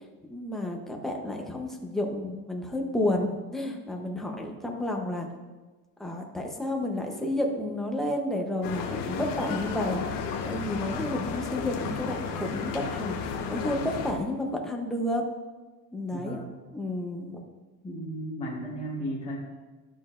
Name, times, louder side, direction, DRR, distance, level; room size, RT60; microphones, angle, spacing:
voice 1, 0.2-5.3 6.0-10.0 10.4-15.2 15.9-16.4 16.7-17.4, left 1 dB, ahead, 0 dB, 0.8 m, -31 dB
sound 1, 8.6-14.1, left 5 dB, 60° left, 1.2 m, -33 dB
voice 2, 16.1-16.5 17.8-19.4, equal, 15° left, -5 dB, 1.2 m, -35 dB
12.0 x 6.4 x 2.5 m, 1.2 s
cardioid pair, 145°, 38 cm